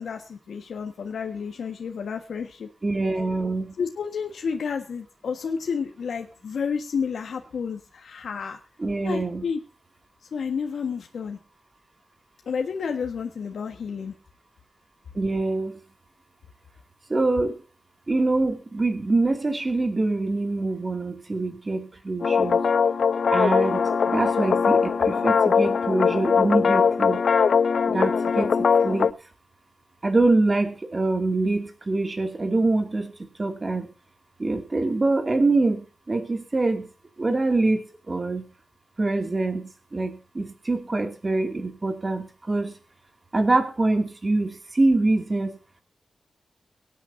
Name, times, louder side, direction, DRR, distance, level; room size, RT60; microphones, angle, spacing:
voice 1, 0.0-2.7 3.8-8.6 9.0-9.6 10.3-11.4 12.4-14.1, left 6 dB, 80° left, 4 dB, 1.5 m, -30 dB
voice 2, 2.8-3.7 8.8-9.4 15.1-15.7 17.1-17.6 18.1-22.6 23.3-27.2 27.9-29.1 30.0-33.1 33.4-33.9 34.4-36.9 37.2-38.4 39.0-42.7 43.3-45.6, right 2 dB, 25° right, 6 dB, 2.5 m, -24 dB
sound 1, 22.2-29.1, left 6 dB, 55° left, 0.5 m, -21 dB
23.5 x 9.2 x 2.7 m, 0.32 s
wide cardioid pair, 180°, 0 cm